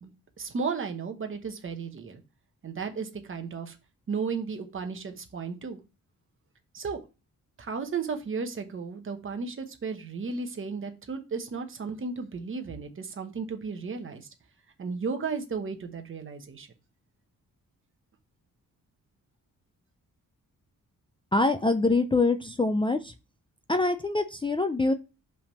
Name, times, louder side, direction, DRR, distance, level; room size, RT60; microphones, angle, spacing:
voice 1, 0.0-2.2 2.6-3.8 4.1-5.8 6.7-7.0 7.6-14.3 14.8-16.7, right 5 dB, 40° right, 6 dB, 1.0 m, -34 dB
voice 2, 21.3-23.1 23.7-24.9, left 3 dB, 15° left, 7 dB, 0.3 m, -24 dB
5.6 x 3.5 x 5.5 m, 0.30 s
wide cardioid pair, 165°, 33 cm